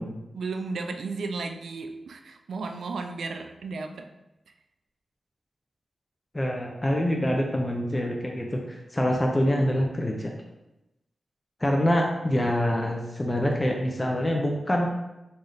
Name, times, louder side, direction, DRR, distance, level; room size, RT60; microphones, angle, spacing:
voice 1, 0.3-4.1, right 4 dB, 85° right, 6 dB, 0.3 m, -34 dB
voice 2, 6.3-10.3 11.6-14.9, equal, 20° left, 0 dB, 0.5 m, -25 dB
3.2 x 2.7 x 3.8 m, 0.94 s
cardioid pair, 65°, 0 cm